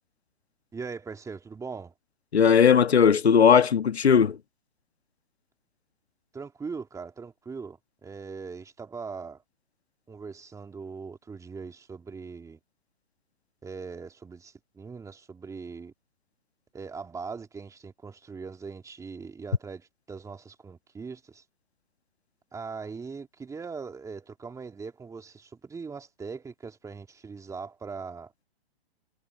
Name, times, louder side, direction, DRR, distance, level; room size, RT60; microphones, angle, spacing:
voice 1, 0.7-1.9 6.3-9.4 10.1-12.6 13.6-15.9 16.7-21.4 22.5-28.3, right 5 dB, 10° right, 2.6 m, -40 dB
voice 2, 2.3-4.4, left 7 dB, 85° left, 1.3 m, -18 dB
hypercardioid pair, 130°, 31 cm